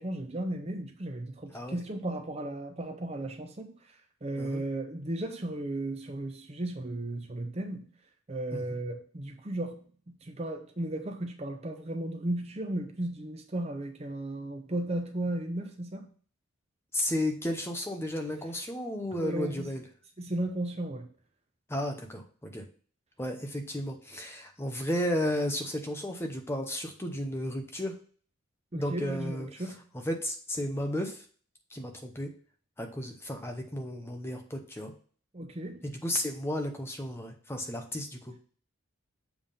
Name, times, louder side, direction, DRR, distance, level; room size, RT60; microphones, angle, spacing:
voice 1, 0.0-3.7 4.2-7.9 8.3-16.1 19.2-19.8 20.2-21.1 28.7-29.8 35.3-35.9, right 1 dB, 30° right, 0.7 m, -35 dB
voice 2, 16.9-19.8 21.7-22.7 23.2-27.9 28.7-29.5 30.0-31.2 31.7-32.3 32.8-34.9 35.8-38.3, left 1 dB, 10° left, 0.9 m, -33 dB
7.3 x 3.6 x 5.5 m
head